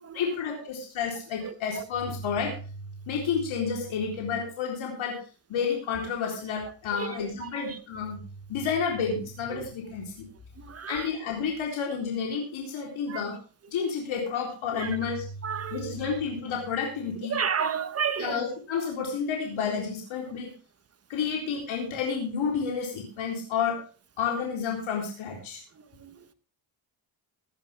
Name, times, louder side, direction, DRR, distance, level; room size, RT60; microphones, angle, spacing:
voice 1, 0.1-2.6 3.1-5.2 5.5-8.2 8.5-10.3 10.9-13.4 13.7-15.3 15.7-17.4 18.2-20.5 21.1-23.8 24.2-25.6, left 6 dB, 70° left, 0 dB, 4.0 m, -30 dB
voice 2, 6.9-7.8 9.5-9.6 10.6-11.1 13.1-13.2 14.8-14.9 15.4-15.9 17.3-18.4 18.8-18.9 26.0-26.3, right 7 dB, 30° right, 12 dB, 1.2 m, -32 dB
17.0 x 11.0 x 3.5 m, 0.37 s
cardioid pair, 140°, 49 cm